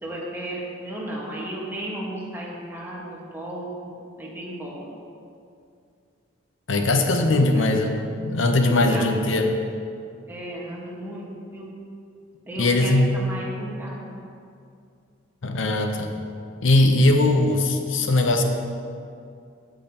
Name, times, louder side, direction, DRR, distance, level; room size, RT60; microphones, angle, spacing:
voice 1, 0.0-4.9 7.5-7.6 8.6-9.4 10.3-11.7 12.4-14.0, right 1 dB, 10° right, -5 dB, 1.4 m, -34 dB
voice 2, 6.7-7.9 8.2-9.6 12.6-13.1 15.4-16.1 16.6-18.4, left 2 dB, 80° left, 5 dB, 0.7 m, -20 dB
8.6 x 8.5 x 2.9 m, 2.4 s
head